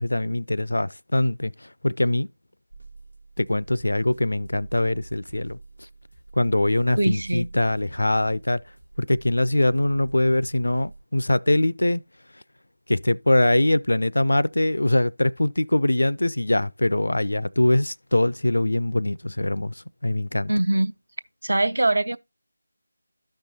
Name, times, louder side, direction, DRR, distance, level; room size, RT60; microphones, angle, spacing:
voice 1, 0.0-2.3 3.4-5.6 6.4-8.6 9.0-12.0 12.9-19.7 20.0-20.5, left 1 dB, 65° left, 0.3 m, -22 dB
sound 1, 2.7-11.0, right 3 dB, 90° right, 1.4 m, -45 dB
voice 2, 7.0-7.5 20.5-20.9 21.4-22.2, right 1 dB, 60° right, 0.5 m, -22 dB
13.0 x 5.5 x 2.7 m
figure-of-eight pair, 160°, 0 cm